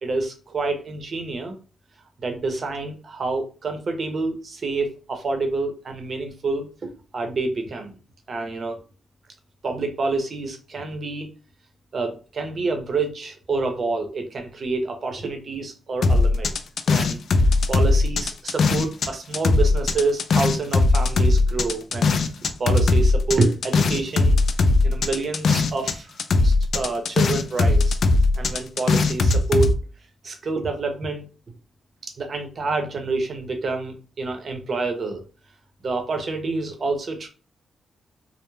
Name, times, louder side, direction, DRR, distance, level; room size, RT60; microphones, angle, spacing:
voice 1, 0.0-1.5 2.2-8.0 8.3-8.8 9.6-11.3 11.9-16.5 16.9-17.2 17.7-22.2 22.6-26.1 26.4-28.0 28.4-29.7 30.2-31.3 32.0-35.2 35.8-37.3, right 3 dB, 50° right, 5 dB, 0.7 m, -27 dB
sound 1, 16.0-19.1 19.3-25.9 26.2-29.7, left 3 dB, 65° left, 0.3 m, -19 dB
2.3 x 2.0 x 3.0 m, 0.36 s
cardioid pair, 85°, 0 cm